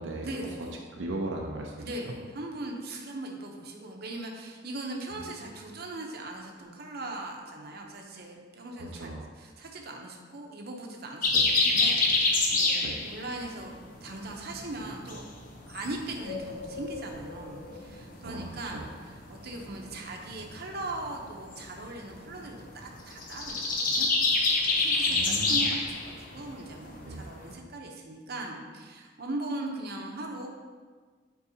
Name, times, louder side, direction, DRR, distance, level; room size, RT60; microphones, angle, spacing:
voice 1, 0.2-0.8 1.8-15.2 15.7-24.1 24.8-30.5, right 2 dB, 60° right, 1 dB, 0.8 m, -39 dB
voice 2, 0.9-1.9 8.8-9.3 11.3-11.4 12.8-13.0 18.2-18.8 25.1-25.7 27.1-27.3, right 2 dB, 85° right, 0 dB, 0.6 m, -37 dB
sound 1, 11.2-13.5 13.8-14.2 14.5-18.7 19.1-19.2 19.6-27.5, left 3 dB, 50° left, 0.8 m, -27 dB
8.0 x 4.6 x 2.8 m, 1.5 s
head